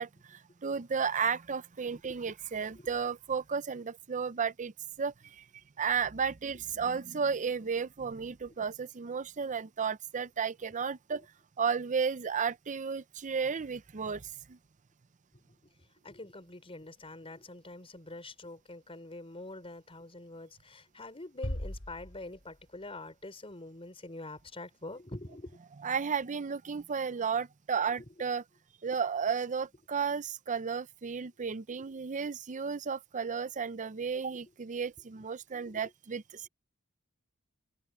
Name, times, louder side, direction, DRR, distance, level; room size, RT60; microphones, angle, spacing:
voice 1, 0.0-5.4 5.8-11.3 11.6-14.6 25.8-28.4 28.8-36.5, right 6 dB, 35° right, 0.6 m, -33 dB
voice 2, 16.0-25.6 28.0-28.1 35.6-35.8, left 2 dB, 25° left, 5.0 m, -45 dB
sound 1, 21.4-23.0, left 1 dB, 60° left, 2.4 m, -39 dB
head